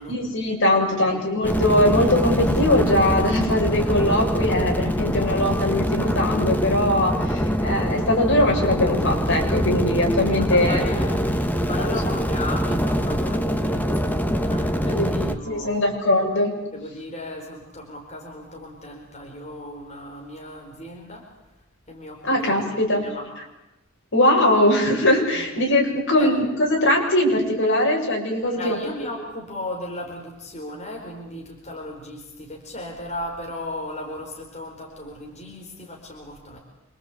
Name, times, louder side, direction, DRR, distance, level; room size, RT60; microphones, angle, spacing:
voice 1, 0.1-10.9 11.8-12.0 14.9-15.1 15.5-16.5 22.2-23.0 24.1-28.8, left 1 dB, 65° left, 0 dB, 7.4 m, -21 dB
voice 2, 0.8-1.2 10.4-15.8 16.7-21.2 21.9-23.2 25.3-25.5 26.2-26.3 28.4-36.6, left 1 dB, 35° left, -1 dB, 4.5 m, -36 dB
sound 1, 1.4-15.4, equal, 10° left, 1.6 m, -24 dB
27.0 x 24.5 x 8.6 m, 0.94 s
head